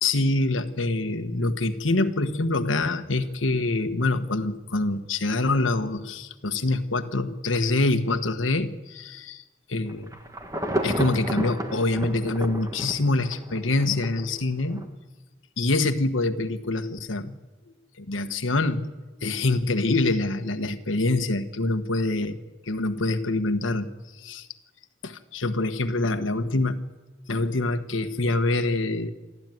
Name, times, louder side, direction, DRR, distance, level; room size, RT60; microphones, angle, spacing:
voice 1, 0.0-9.4 9.7-10.1 10.8-14.8 15.6-17.4 18.0-18.9 19.2-22.4 22.6-23.9 24.2-24.5 25.0-26.8 27.3-29.1, left 2 dB, 85° left, 8 dB, 1.4 m, -25 dB
Insect / Thunder / Rain, 9.9-14.3 14.7-14.8, right 1 dB, 15° right, 1.8 m, -31 dB
27.5 x 12.5 x 9.3 m, 1.2 s
head